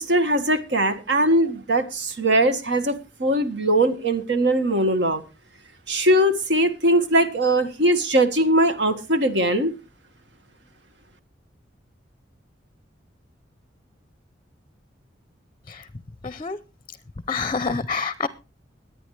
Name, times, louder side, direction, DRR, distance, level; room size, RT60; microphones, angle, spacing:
voice 1, 0.0-5.2 5.9-9.7, right 1 dB, 70° right, 1.7 m, -20 dB
voice 2, 16.2-16.6 16.9-17.0 17.3-18.3, left 4 dB, 30° left, 0.6 m, -27 dB
22.0 x 9.1 x 3.3 m
head